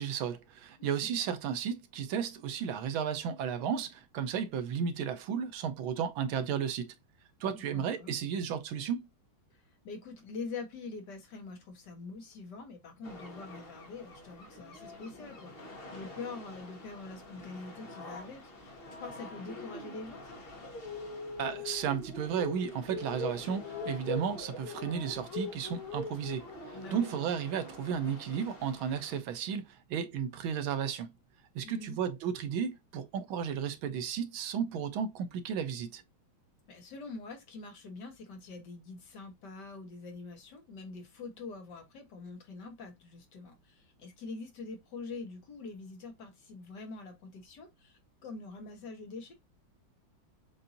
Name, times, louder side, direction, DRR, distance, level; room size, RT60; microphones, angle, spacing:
voice 1, 0.0-6.9 7.4-9.0 21.4-31.1 31.5-36.0, right 7 dB, 90° right, 1.5 m, -34 dB
voice 2, 7.5-8.2 9.5-20.4 26.7-27.1 31.6-32.0 36.7-49.3, left 4 dB, 60° left, 1.7 m, -45 dB
sound 1, 13.0-29.2, left 3 dB, 35° left, 1.0 m, -43 dB
7.1 x 2.6 x 2.5 m
omnidirectional pair, 2.2 m